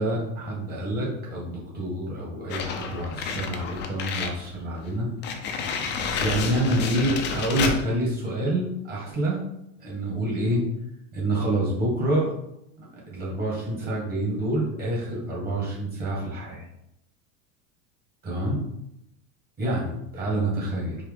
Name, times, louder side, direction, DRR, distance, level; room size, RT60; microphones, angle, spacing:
voice 1, 0.0-5.1 6.2-9.4 9.8-10.6 11.1-12.3 13.1-16.7 18.3-18.6 19.6-21.0, right 1 dB, 25° right, -4 dB, 1.8 m, -27 dB
sound 1, 2.5-4.4 4.8-4.9 5.2-7.8, left 5 dB, 30° left, 0.5 m, -30 dB
4.7 x 2.9 x 3.7 m, 0.81 s
supercardioid pair, 140°, 41 cm